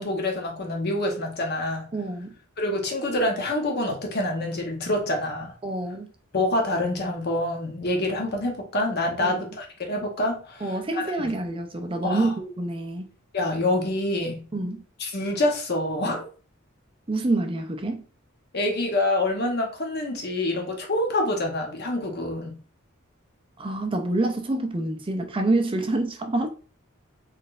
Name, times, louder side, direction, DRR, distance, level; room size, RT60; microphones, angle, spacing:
voice 1, 0.0-1.9 2.6-5.5 6.3-10.6 10.9-11.3 12.0-12.3 13.3-14.4 15.0-16.3 18.5-22.5, left 1 dB, 50° left, 1.0 m, -26 dB
voice 2, 1.9-2.4 5.6-6.1 9.2-9.5 10.6-13.1 14.5-14.8 17.1-18.0 23.6-26.5, right 2 dB, 25° right, 0.5 m, -27 dB
4.1 x 3.2 x 2.4 m
head